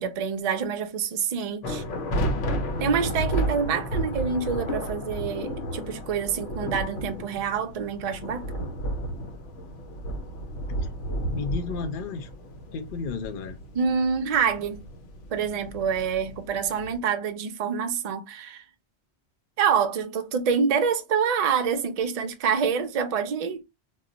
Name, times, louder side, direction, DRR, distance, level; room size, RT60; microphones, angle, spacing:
voice 1, 0.0-1.8 2.8-8.7 13.7-14.8 15.3-18.6 19.6-23.6, right 6 dB, 60° right, 0.4 m, -26 dB
sound 1, 1.6-17.0, equal, 85° left, 0.9 m, -32 dB
voice 2, 11.3-12.3 12.7-13.6, left 5 dB, 60° left, 0.6 m, -33 dB
2.3 x 2.0 x 3.7 m
omnidirectional pair, 1.2 m